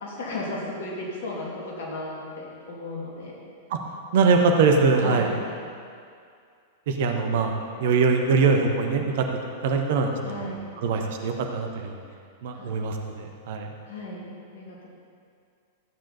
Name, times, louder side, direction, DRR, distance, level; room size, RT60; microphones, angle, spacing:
voice 1, 0.0-3.4 5.0-5.4 10.2-10.7 12.5-12.7 13.8-14.3 14.5-14.9, left 2 dB, 55° left, -4 dB, 2.8 m, -35 dB
voice 2, 4.1-5.3 6.9-7.5 7.8-9.3 9.6-10.1 10.8-12.0 12.4-13.7, right 4 dB, 55° right, 3 dB, 1.1 m, -22 dB
13.5 x 8.9 x 4.2 m, 2.3 s
figure-of-eight pair, 95°, 0 cm